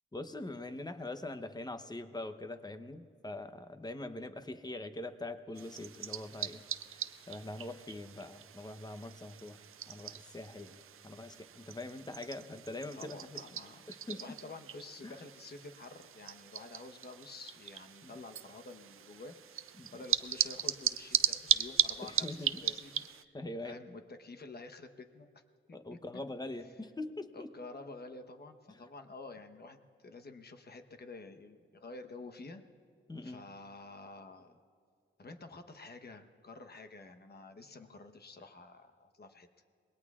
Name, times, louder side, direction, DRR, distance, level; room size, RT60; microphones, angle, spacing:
voice 1, 0.1-10.7 11.0-13.4 13.9-14.4 15.0-15.2 18.0-18.2 19.8-20.0 22.0-22.6 23.3-23.8 25.7-27.5 28.7-28.9 33.1-33.4, left 2 dB, 20° left, 9 dB, 0.8 m, -43 dB
sound 1, 5.6-23.2, right 9 dB, 80° right, 0.5 m, -37 dB
voice 2, 12.9-23.3 23.6-25.4 25.9-26.0 27.3-32.6 33.2-34.6 35.2-39.5, left 3 dB, 50° left, 7 dB, 1.1 m, -50 dB
26.5 x 21.0 x 2.4 m, 2.3 s
wide cardioid pair, 95°, 21 cm